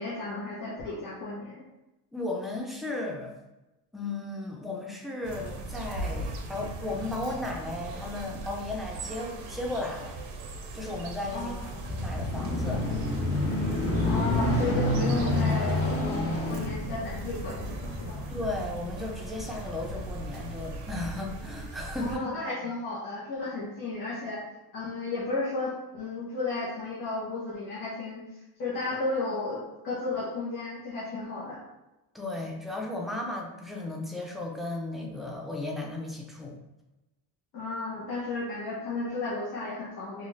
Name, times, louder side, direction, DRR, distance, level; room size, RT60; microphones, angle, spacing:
voice 1, 0.0-1.6 11.3-11.8 14.0-18.2 22.0-24.4 24.7-28.2 28.6-31.6 37.5-40.3, left 3 dB, 75° left, -7 dB, 0.8 m, -33 dB
voice 2, 2.1-3.3 3.9-10.1 10.7-11.6 11.9-12.8 18.3-22.3 32.1-36.6, left 2 dB, ahead, -1 dB, 0.4 m, -35 dB
sound 1, 5.2-22.2, right 2 dB, 90° right, 0.6 m, -39 dB
sound 2, 11.4-20.1 20.7-20.8, left 1 dB, 35° left, 0.7 m, -29 dB
2.4 x 2.4 x 3.1 m, 0.99 s
cardioid pair, 110°, 40 cm